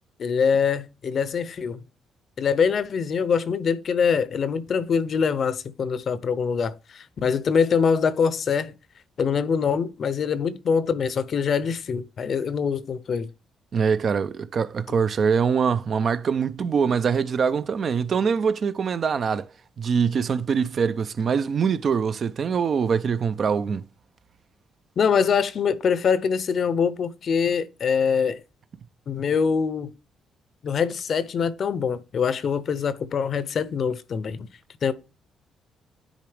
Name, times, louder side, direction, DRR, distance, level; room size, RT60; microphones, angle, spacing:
voice 1, 0.2-1.8 2.4-8.7 9.2-13.3 25.0-28.4 29.1-29.9 30.6-34.5 34.8-34.9, left 6 dB, 55° left, 0.6 m, -24 dB
voice 2, 13.7-19.5 19.8-23.8, right 6 dB, 50° right, 0.4 m, -23 dB
10.0 x 3.8 x 3.3 m
cardioid pair, 90°, 0 cm